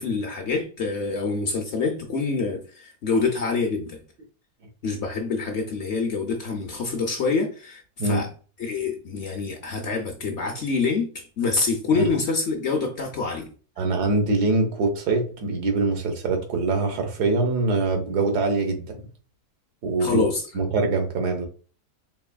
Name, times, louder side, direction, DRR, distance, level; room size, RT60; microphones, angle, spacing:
voice 1, 0.0-4.0 4.8-8.3 8.6-13.5 20.0-20.4, left 4 dB, 60° left, 3 dB, 0.8 m, -26 dB
voice 2, 13.8-19.0 19.8-20.2 20.5-21.5, right 3 dB, 85° right, 3 dB, 1.5 m, -23 dB
4.7 x 3.4 x 2.2 m, 0.39 s
omnidirectional pair, 1.7 m